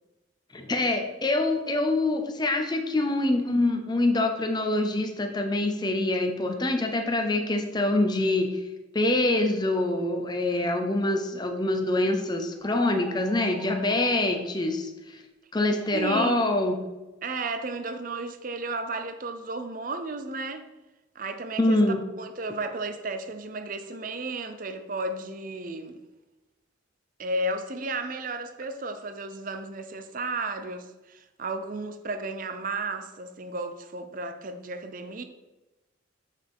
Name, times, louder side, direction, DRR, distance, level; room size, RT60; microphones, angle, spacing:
voice 1, 0.5-8.6 8.9-15.2 15.5-16.8 21.6-22.0, left 2 dB, 20° left, 0.6 m, -25 dB
sound 1, 12.6-14.4 15.7-16.7, left 2 dB, 10° right, 1.7 m, -45 dB
voice 2, 15.9-16.3 17.2-20.7 21.1-21.8 22.2-26.0 27.2-35.2, right 2 dB, 45° right, 0.6 m, -33 dB
7.3 x 6.4 x 3.6 m
head